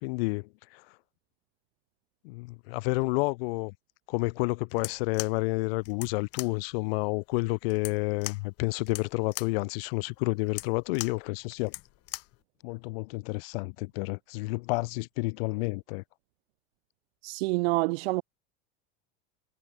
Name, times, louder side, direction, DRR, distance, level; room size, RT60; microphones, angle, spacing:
voice 1, 0.0-0.8 2.2-3.7 4.1-11.7 12.6-16.0, left 26 dB, 70° left, 1.0 m, -30 dB
sound 1, 4.7-12.4, left 21 dB, 50° left, 2.8 m, -41 dB
voice 2, 17.2-18.2, right 24 dB, 80° right, 0.5 m, -27 dB
supercardioid pair, 145°, 30 cm